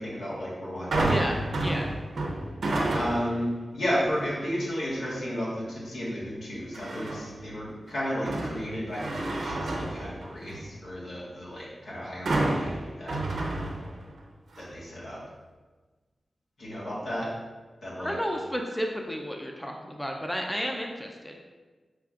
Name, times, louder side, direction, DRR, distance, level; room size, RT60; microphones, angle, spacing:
voice 1, 0.0-1.1 2.9-3.5 3.7-12.7 13.0-13.2 14.6-15.2 16.6-17.3 17.8-18.1, equal, 80° left, -7 dB, 1.4 m, -33 dB
sound 1, 0.9-3.4 3.9-4.3 6.7-7.4 7.9-10.7 12.3-14.2 14.5-14.6, right 2 dB, 85° right, 0.6 m, -30 dB
voice 2, 1.0-1.9 18.0-21.4, equal, 5° left, 1 dB, 0.4 m, -32 dB
6.0 x 3.3 x 2.4 m, 1.3 s
wide cardioid pair, 85°, 0 cm